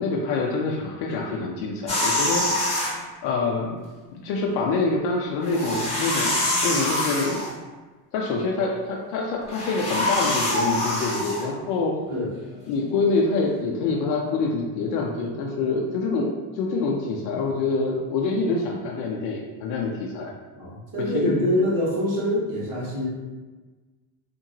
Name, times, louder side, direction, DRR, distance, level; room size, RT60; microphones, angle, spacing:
voice 1, 0.0-2.8 3.2-3.8 4.2-6.3 6.6-7.4 8.1-12.0 12.7-20.3 21.0-21.3, left 3 dB, 55° left, -2 dB, 0.5 m, -26 dB
sound 1, 1.9-3.0 5.4-7.5 9.4-11.4, left 1 dB, 15° left, 0.8 m, -25 dB
voice 2, 20.5-23.1, left 1 dB, 40° right, -7 dB, 1.4 m, -25 dB
2.9 x 2.6 x 2.6 m, 1.3 s
supercardioid pair, 125°, 47 cm